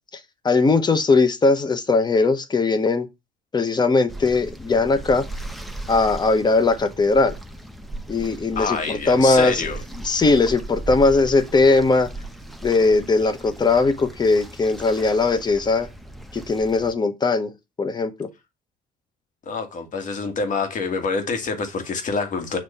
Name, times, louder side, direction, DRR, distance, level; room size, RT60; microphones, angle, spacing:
voice 1, 0.4-3.1 3.5-5.2 5.9-7.3 8.1-9.7 10.0-12.1 12.6-15.9 16.3-17.5 17.8-18.3, left 3 dB, 25° left, 1.1 m, -19 dB
sound 1, 4.1-16.9, right 1 dB, ahead, 0.8 m, -37 dB
voice 2, 8.6-9.8 19.4-22.6, left 4 dB, 50° left, 1.8 m, -26 dB
7.3 x 3.0 x 5.4 m
cardioid pair, 110°, 17 cm